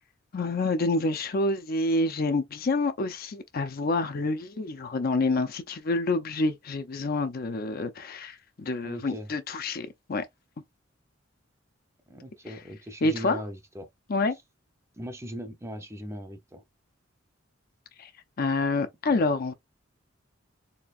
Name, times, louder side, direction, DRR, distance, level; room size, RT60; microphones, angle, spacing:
voice 1, 0.3-10.2 12.5-12.6 13.0-13.4 14.1-14.4 18.0-18.1 18.4-19.5, left 2 dB, 50° left, 0.5 m, -27 dB
voice 2, 8.8-9.3 12.1-13.9 15.0-16.6, equal, 15° right, 0.6 m, -39 dB
4.3 x 2.8 x 2.4 m
head